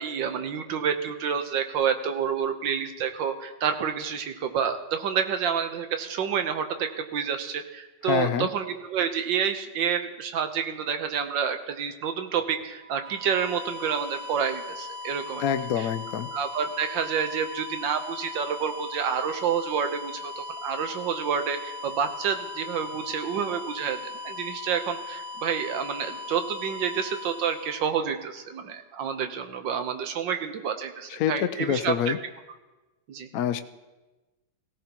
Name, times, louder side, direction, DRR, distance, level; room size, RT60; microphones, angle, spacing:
voice 1, 0.0-15.5 15.8-15.9 16.3-32.2 33.1-33.3, right 7 dB, 85° right, 7 dB, 1.6 m, -29 dB
voice 2, 8.0-8.5 15.4-16.3 31.1-32.2 33.3-33.6, left 9 dB, 65° left, 8 dB, 0.9 m, -26 dB
sound 1, 12.7-28.5, left 4 dB, 5° right, 2.0 m, -39 dB
18.0 x 16.5 x 2.9 m, 1.1 s
omnidirectional pair, 1.9 m